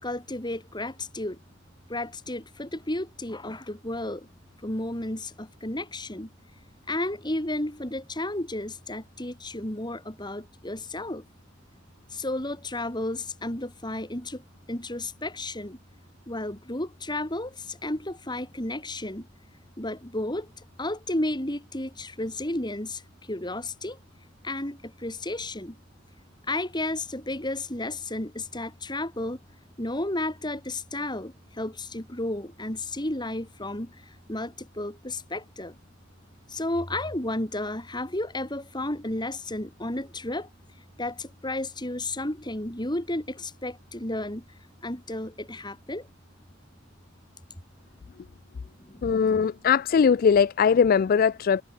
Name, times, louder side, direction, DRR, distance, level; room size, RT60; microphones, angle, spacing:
voice 1, 0.0-1.4 1.9-4.3 4.6-6.3 6.9-11.2 12.1-15.8 16.3-19.3 19.8-24.0 24.4-25.8 26.5-29.4 29.8-35.8 36.5-40.5 41.0-44.5 44.8-46.1 48.8-49.3, left 1 dB, 25° left, 4.3 m, -32 dB
voice 2, 49.0-51.6, left 6 dB, 45° left, 0.3 m, -20 dB
head